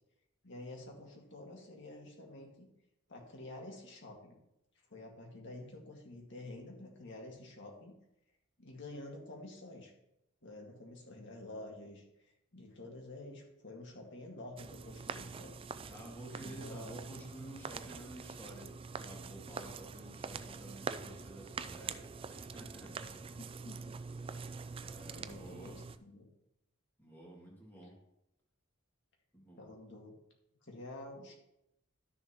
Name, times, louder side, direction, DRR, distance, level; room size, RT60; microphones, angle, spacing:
voice 1, 0.4-2.7 3.1-4.4 4.9-7.9 8.6-9.9 10.4-12.0 12.5-15.6 16.4-17.0 23.4-24.0 25.1-26.3 29.6-30.2 30.6-31.3, left 2 dB, 60° left, 0 dB, 2.0 m, -49 dB
sound 1, 14.6-26.0, right 5 dB, 25° right, 0.3 m, -45 dB
voice 2, 15.7-23.1 24.8-25.8 27.0-27.9 29.3-29.6, right 1 dB, 10° left, -4 dB, 2.5 m, -51 dB
12.0 x 6.7 x 3.0 m, 0.84 s
head